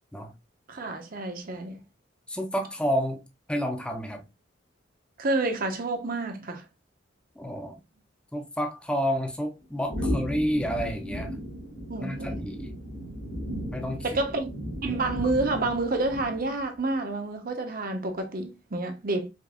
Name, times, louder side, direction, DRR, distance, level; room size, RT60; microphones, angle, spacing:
voice 1, 0.7-1.8 5.2-6.6 11.9-12.5 14.0-14.5 14.8-19.3, right 2 dB, 50° right, 0.9 m, -29 dB
voice 2, 2.3-3.2 3.5-4.2 7.4-7.8 8.3-11.4 12.0-12.7 13.7-14.2, equal, 5° left, 0.6 m, -30 dB
sound 1, 9.9-16.6, equal, 80° left, 2.2 m, -35 dB
5.1 x 2.6 x 2.4 m
head